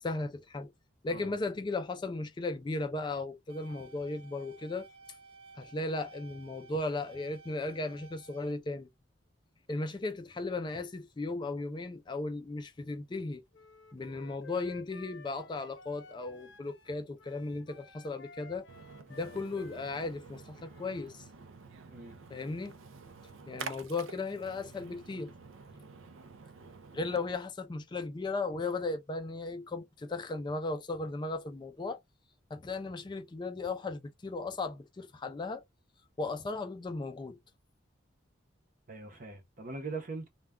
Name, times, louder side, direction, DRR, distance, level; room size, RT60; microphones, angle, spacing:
voice 1, 0.0-0.7 1.0-4.9 5.6-8.9 9.7-13.4 13.9-18.7 19.1-21.3 22.3-22.7 23.5-25.3 26.9-32.0 32.5-35.6 36.2-37.4, left 3 dB, 25° left, 0.3 m, -36 dB
sound 1, 3.5-8.5, right 4 dB, 70° right, 1.2 m, -55 dB
Wind instrument woodwind instrument, 13.5-21.1, left 5 dB, 65° left, 0.7 m, -54 dB
Splash splatter, 18.7-27.4, right 5 dB, 90° right, 0.4 m, -49 dB
voice 2, 38.9-40.3, right 3 dB, 45° right, 0.7 m, -41 dB
2.2 x 2.2 x 3.5 m
head